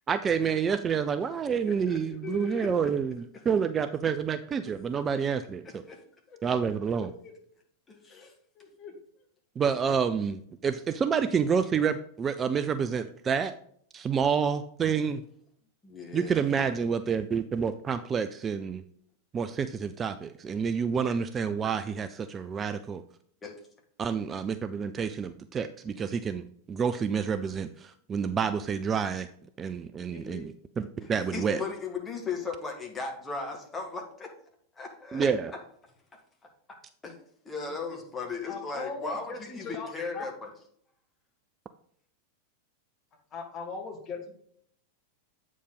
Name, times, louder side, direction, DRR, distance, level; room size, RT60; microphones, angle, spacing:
voice 1, 0.1-5.8 6.4-7.1 9.6-13.5 13.9-15.2 16.1-18.8 19.3-23.0 24.0-29.3 29.6-31.6 35.1-35.5, right 6 dB, 20° right, 10 dB, 0.4 m, -28 dB
voice 2, 1.6-2.7 5.9-6.0 7.9-8.3 15.8-16.8 23.4-23.5 31.3-34.3 34.8-35.3 37.0-37.2 37.5-40.5, left 4 dB, 15° left, 1 dB, 1.9 m, -37 dB
voice 3, 6.3-6.6 7.0-7.3 8.1-8.9 30.0-30.5 37.7-38.0 38.5-39.9 40.1-40.3 43.3-44.3, left 4 dB, 30° left, 2 dB, 1.8 m, -40 dB
8.2 x 4.9 x 3.9 m, 0.64 s
figure-of-eight pair, 90°, 0 cm